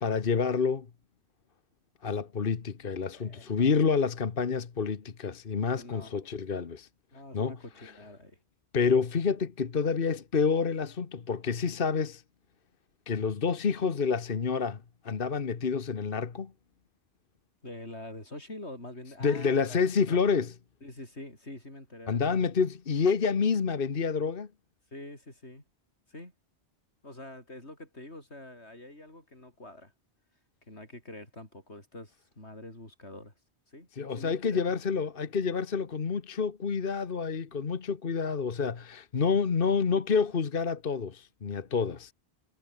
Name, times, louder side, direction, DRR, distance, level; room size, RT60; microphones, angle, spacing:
voice 1, 0.0-0.9 2.0-6.9 7.3-7.5 8.7-12.2 13.1-16.5 19.2-20.5 22.1-24.5 34.0-42.1, left 5 dB, 55° left, 1.4 m, -28 dB
voice 2, 3.1-3.8 5.8-6.3 7.1-8.4 17.6-19.8 20.1-20.2 20.8-22.3 24.9-25.6 26.1-26.3 27.0-29.9 30.7-33.3 33.7-33.9 34.2-34.8, left 1 dB, 85° left, 7.4 m, -45 dB
omnidirectional pair, 1.1 m